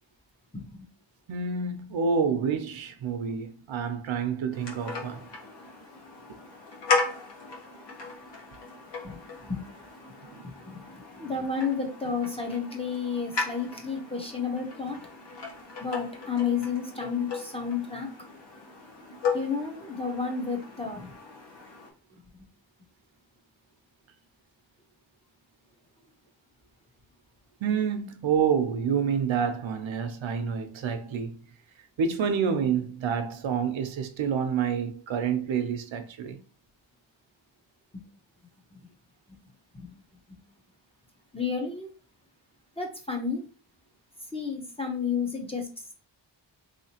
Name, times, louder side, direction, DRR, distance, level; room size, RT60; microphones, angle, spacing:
voice 1, 0.5-0.9 9.0-9.2 9.4-9.6 10.4-15.0 15.8-18.1 19.3-21.1 22.1-22.2 37.9-38.0 38.7-38.8 39.3-39.4 39.7-39.9 41.3-41.9 42.8-43.4 44.3-45.9, left 5 dB, 15° left, 0.6 m, -31 dB
voice 2, 1.3-5.2 10.2-10.4 27.6-31.4 32.0-36.4, right 6 dB, 85° right, 0.7 m, -28 dB
sound 1, 4.5-21.9, left 4 dB, 65° left, 1.1 m, -36 dB
3.6 x 2.8 x 2.8 m
wide cardioid pair, 170°, 45 cm